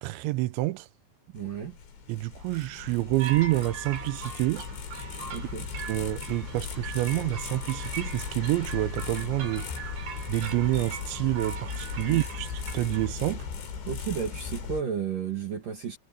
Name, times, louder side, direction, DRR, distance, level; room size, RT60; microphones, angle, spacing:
voice 1, 0.0-0.9 2.1-4.7 5.9-9.7 10.3-13.5, right 19 dB, 85° right, 3.0 m, -28 dB
voice 2, 1.3-1.8 5.3-5.7 12.0-12.2 13.8-16.0, right 7 dB, 50° right, 4.0 m, -33 dB
sound 1, 1.4-14.8, left 6 dB, 75° left, 6.4 m, -37 dB
sound 2, 3.2-13.1, right 6 dB, 70° right, 5.7 m, -41 dB
omnidirectional pair, 5.3 m